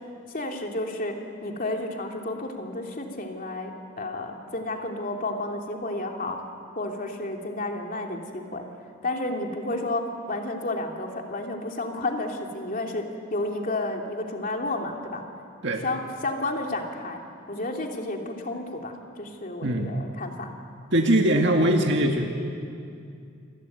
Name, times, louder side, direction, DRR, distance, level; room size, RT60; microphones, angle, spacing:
voice 1, 0.3-1.2 1.4-6.4 6.7-8.6 9.0-13.0 13.3-15.2 15.8-17.2 17.5-20.5, left 2 dB, 45° left, 2 dB, 3.1 m, -31 dB
voice 2, 19.6-20.0 20.9-22.2, right 1 dB, 65° right, 2 dB, 1.9 m, -21 dB
28.0 x 22.5 x 9.4 m, 2.4 s
head